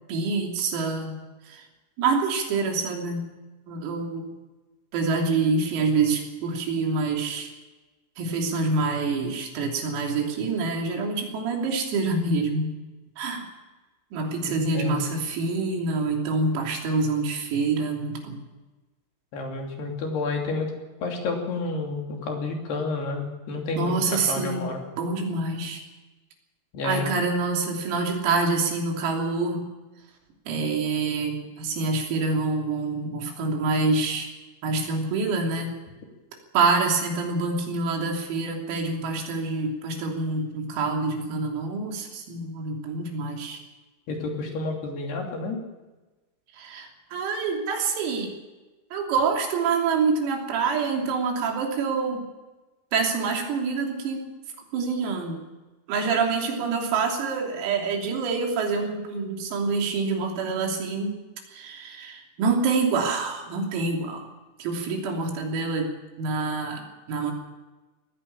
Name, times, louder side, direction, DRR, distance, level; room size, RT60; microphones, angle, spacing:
voice 1, 0.1-1.1 1.5-1.7 2.0-3.2 3.7-4.3 4.9-7.5 8.2-12.7 13.2-13.5 14.1-18.4 23.8-24.7 25.0-25.8 26.8-29.7 30.5-34.3 34.6-35.7 36.5-43.6 46.5-48.3 48.9-52.2 52.9-54.2 54.7-55.5 55.9-61.2 61.5-64.3 64.6-65.9 66.2-67.3, right 4 dB, 85° right, 1 dB, 5.8 m, -26 dB
voice 2, 14.4-15.1 19.3-20.7 21.0-24.8 26.7-27.1 44.1-45.6, left 3 dB, 55° left, 1 dB, 4.6 m, -30 dB
19.5 x 15.5 x 8.7 m, 1.2 s
omnidirectional pair, 6.0 m